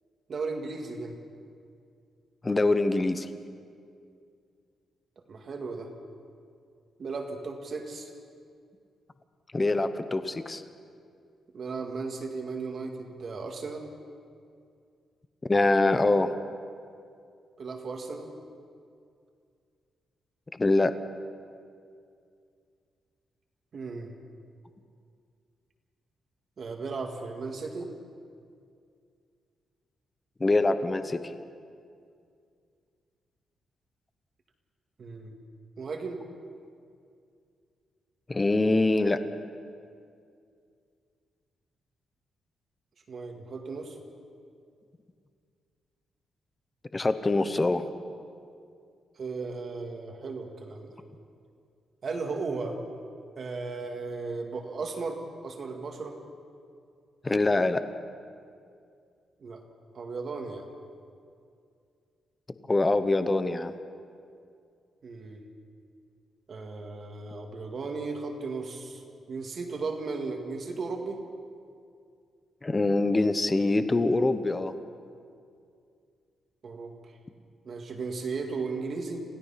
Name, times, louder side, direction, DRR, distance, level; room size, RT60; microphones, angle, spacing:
voice 1, 0.3-1.2 5.3-5.9 7.0-8.1 11.5-13.9 17.6-18.3 23.7-24.1 26.6-27.9 35.0-35.3 35.8-36.2 43.1-44.0 49.2-50.9 52.0-52.8 53.4-56.2 59.4-59.6 59.9-60.7 65.0-65.4 66.5-69.0 69.3-71.2 76.6-77.1 77.7-79.2, right 4 dB, 45° right, 3 dB, 2.1 m, -35 dB
voice 2, 2.4-3.3 9.5-10.6 15.5-16.3 20.6-21.0 30.4-31.3 38.3-39.2 46.9-47.8 57.2-57.8 62.7-63.7 72.6-74.7, left 2 dB, 20° left, 11 dB, 0.8 m, -24 dB
27.5 x 16.5 x 5.8 m, 2.3 s
wide cardioid pair, 150°, 0 cm